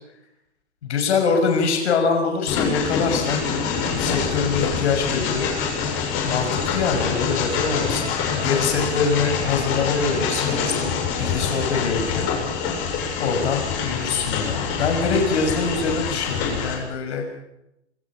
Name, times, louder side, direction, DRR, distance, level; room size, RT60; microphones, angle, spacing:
voice 1, 0.8-3.4 3.9-5.9 6.2-10.9 11.2-12.3 12.6-12.7 13.2-17.2, left 5 dB, 75° left, 4 dB, 6.3 m, -24 dB
Train, 2.5-16.8, left 6 dB, 35° left, 7.4 m, -25 dB
27.0 x 25.0 x 6.1 m, 0.89 s
hypercardioid pair, 150°, 34 cm